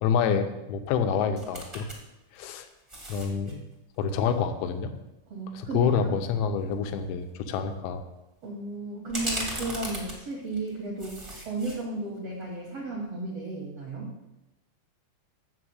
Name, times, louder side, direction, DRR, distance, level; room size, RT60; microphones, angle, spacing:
voice 1, 0.0-1.9 2.3-2.7 3.1-3.6 4.0-4.9 5.5-8.0, left 7 dB, 85° left, 7 dB, 3.1 m, -27 dB
sound 1, 1.3-2.0 2.3-3.5 6.2-6.3 6.7-6.9 9.1-10.7 11.0-11.8 12.2-12.3, right 1 dB, 25° right, 0.5 m, -36 dB
voice 2, 5.3-6.1 6.4-6.5 8.4-14.1, right 2 dB, 65° right, -2 dB, 1.5 m, -34 dB
7.3 x 6.7 x 7.9 m, 0.98 s
omnidirectional pair, 5.0 m